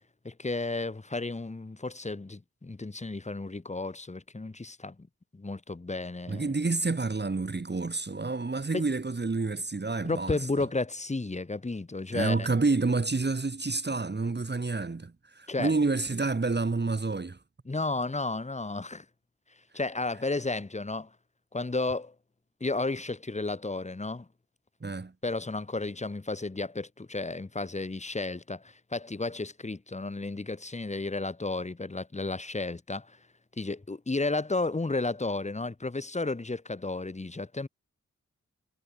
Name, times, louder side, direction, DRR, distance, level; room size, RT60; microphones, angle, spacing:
voice 1, 0.2-5.1 5.3-6.5 8.7-8.8 10.0-12.5 15.5-15.7 17.6-19.0 19.7-21.1 21.5-22.1 22.6-24.3 25.2-33.2 33.6-37.7, left 3 dB, 20° left, 1.3 m, -33 dB
voice 2, 6.3-10.7 12.1-17.4 24.8-25.1, right 3 dB, 35° right, 1.8 m, -29 dB
wide cardioid pair, 90°, 30 cm